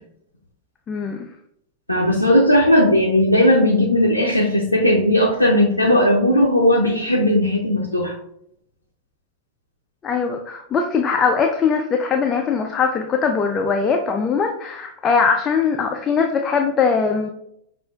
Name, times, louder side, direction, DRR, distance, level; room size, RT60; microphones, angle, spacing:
voice 1, 0.9-1.3 10.0-17.3, left 5 dB, 25° left, 3 dB, 0.4 m, -21 dB
voice 2, 1.9-8.1, left 1 dB, 85° left, -2 dB, 0.5 m, -17 dB
6.0 x 2.5 x 2.3 m, 0.72 s
figure-of-eight pair, 90°, 0 cm